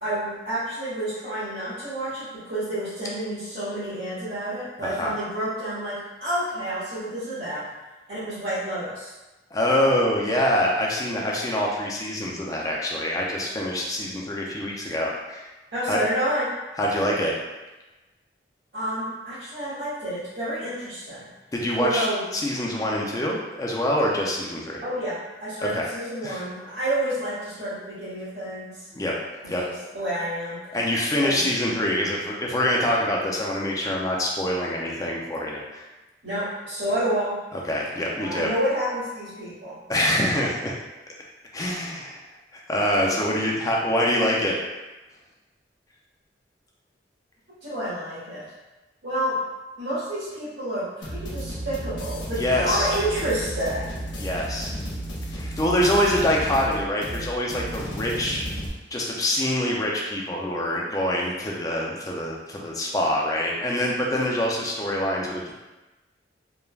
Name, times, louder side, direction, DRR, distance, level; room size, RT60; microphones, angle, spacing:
voice 1, 0.0-7.7 8.1-9.1 15.7-16.5 18.7-21.3 21.8-22.2 24.8-28.8 29.4-30.6 31.2-31.4 36.2-37.4 38.1-39.8 47.6-48.5 49.0-49.4 49.8-54.0, right 1 dB, 85° right, -13 dB, 1.0 m, -29 dB
voice 2, 4.8-5.1 9.5-15.5 15.9-16.0 16.8-17.3 21.5-22.1 22.3-24.8 25.6-25.9 26.2-26.4 28.9-29.1 29.5-29.6 30.7-35.8 37.5-38.5 39.9-40.7 41.5-42.2 42.5-44.6 52.4-52.9 54.2-54.7 55.3-58.4 58.9-65.5, left 1 dB, 20° left, -2 dB, 0.3 m, -25 dB
sound 1, 51.0-58.7, equal, 85° left, 0.6 m, -33 dB
3.2 x 2.0 x 2.3 m, 1.1 s
head